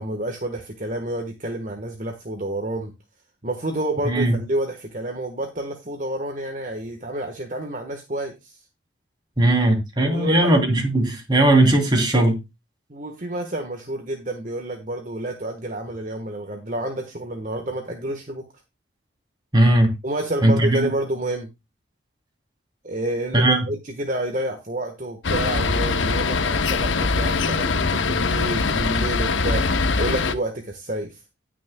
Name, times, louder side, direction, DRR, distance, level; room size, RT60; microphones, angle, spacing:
voice 1, 0.0-2.9 3.4-8.6 10.0-10.5 12.9-18.5 20.0-21.5 22.8-31.2, right 1 dB, 40° right, 1.3 m, -29 dB
voice 2, 4.0-4.4 9.4-12.4 19.5-19.9 20.4-20.9 23.3-23.7, right 1 dB, 25° right, 3.1 m, -18 dB
sound 1, 25.2-30.3, left 4 dB, 85° left, 0.9 m, -22 dB
18.5 x 6.3 x 2.3 m
head